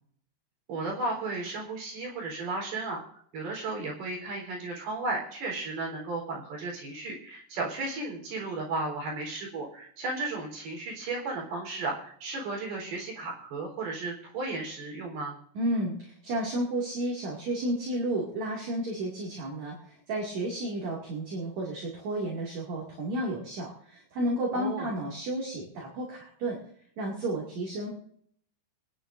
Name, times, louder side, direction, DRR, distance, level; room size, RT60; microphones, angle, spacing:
voice 1, 0.7-3.0 3.3-15.4 24.5-24.9, right 3 dB, 70° right, -1 dB, 6.0 m, -34 dB
voice 2, 15.5-19.8 20.1-26.6 27.0-27.9, right 1 dB, 45° right, -3 dB, 3.2 m, -32 dB
26.0 x 10.5 x 2.6 m, 0.63 s
omnidirectional pair, 4.8 m